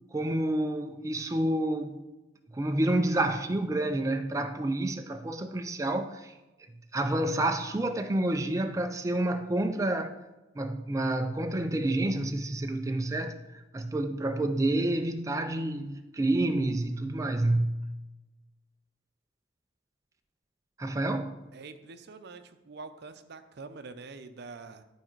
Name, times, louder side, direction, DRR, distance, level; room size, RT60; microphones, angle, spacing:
voice 1, 0.1-2.0 2.5-6.3 6.9-10.1 10.6-13.4 13.7-17.8 20.8-21.4, right 1 dB, 15° right, 0.4 m, -29 dB
voice 2, 3.2-3.5 21.5-24.8, right 4 dB, 60° right, 0.6 m, -45 dB
11.5 x 4.9 x 4.5 m
head